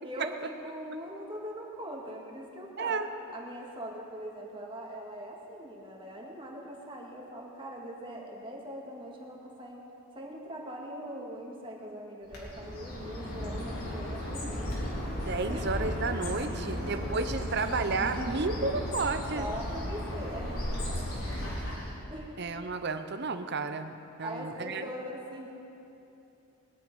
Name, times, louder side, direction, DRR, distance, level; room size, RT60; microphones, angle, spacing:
voice 1, 0.0-3.0 3.3-9.8 10.1-15.0 15.5-15.9 16.5-17.2 18.0-18.7 19.3-21.6 22.1-22.7 24.2-25.5, equal, 25° right, -2 dB, 2.1 m, -41 dB
Bird, 12.3-22.0, left 1 dB, 85° left, 3.9 m, -35 dB
voice 2, 15.3-19.5 22.4-24.8, right 4 dB, 50° right, 9 dB, 0.8 m, -32 dB
21.0 x 11.0 x 5.5 m, 2.9 s
head